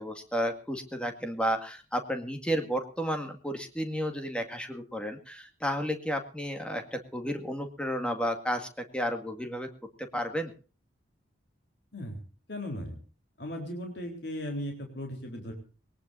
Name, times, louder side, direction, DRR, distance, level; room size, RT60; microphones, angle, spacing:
voice 1, 0.0-9.7 10.0-10.5, equal, 5° left, 5 dB, 2.0 m, -32 dB
voice 2, 12.5-13.0 13.4-15.5, left 1 dB, 60° left, 3 dB, 3.9 m, -37 dB
21.5 x 19.0 x 2.7 m, 0.35 s
head